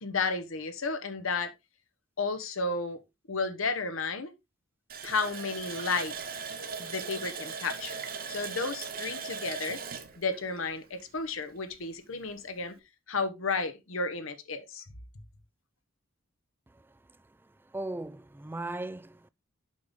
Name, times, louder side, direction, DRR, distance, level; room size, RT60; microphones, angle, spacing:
voice 1, 0.0-1.5 2.2-3.0 3.3-4.3 5.0-6.1 6.8-8.0 8.3-9.8 10.2-12.7 13.1-14.8, left 4 dB, 75° left, 1.1 m, -32 dB
Water tap faucet, 4.9-11.4 11.7-11.8 12.3-12.4, right 5 dB, 45° right, 1.1 m, -39 dB
voice 2, 17.7-19.3, right 2 dB, 10° right, 0.3 m, -37 dB
7.7 x 5.4 x 3.7 m
head